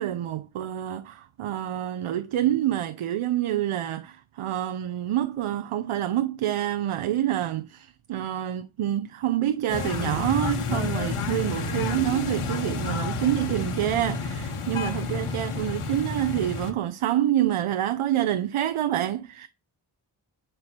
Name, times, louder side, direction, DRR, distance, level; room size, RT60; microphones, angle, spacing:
voice 1, 0.0-19.5, right 12 dB, 90° right, 0.8 m, -27 dB
sound 1, 9.7-16.7, left 4 dB, 85° left, 2.1 m, -30 dB
10.5 x 4.8 x 6.7 m
cardioid pair, 50°, 49 cm